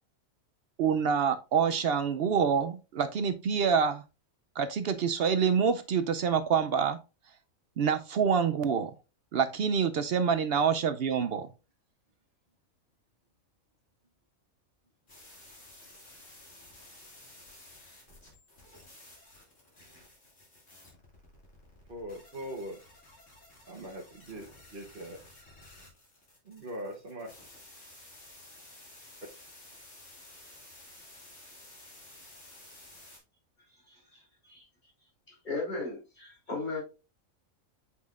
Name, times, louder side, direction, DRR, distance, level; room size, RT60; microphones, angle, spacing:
voice 1, 0.8-4.0 4.6-7.0 7.8-8.9 9.3-11.5, right 6 dB, 65° right, 0.6 m, -26 dB
sound 1, 15.1-33.2, left 1 dB, 65° left, 3.0 m, -54 dB
voice 2, 21.9-22.8 23.7-25.2 26.4-27.3, equal, 45° right, 1.2 m, -41 dB
voice 3, 33.9-34.7 35.4-36.8, left 3 dB, 35° left, 3.6 m, -36 dB
7.6 x 5.5 x 2.4 m
omnidirectional pair, 1.4 m